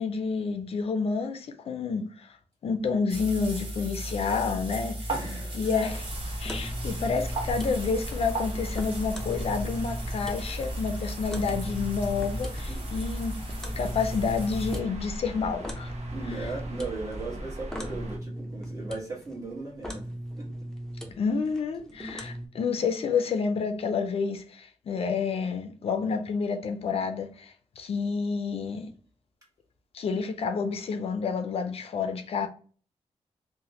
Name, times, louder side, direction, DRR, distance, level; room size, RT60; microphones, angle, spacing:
voice 1, 0.0-2.4 2.6-5.1 5.5-6.1 6.4-13.4 13.8-15.9 16.3-16.5 21.2-28.9 29.9-32.5, left 5 dB, 60° left, 0.4 m, -29 dB
sound 1, 3.1-14.8, equal, 50° right, 0.9 m, -35 dB
voice 2, 5.1-5.7 12.7-12.8 16.1-20.5, right 3 dB, 30° right, 1.3 m, -37 dB
sound 2, 5.5-22.5, equal, 5° left, 0.5 m, -40 dB
sound 3, 5.9-18.2, right 1 dB, 80° right, 0.6 m, -39 dB
3.1 x 2.1 x 2.7 m
wide cardioid pair, 130°, 11 cm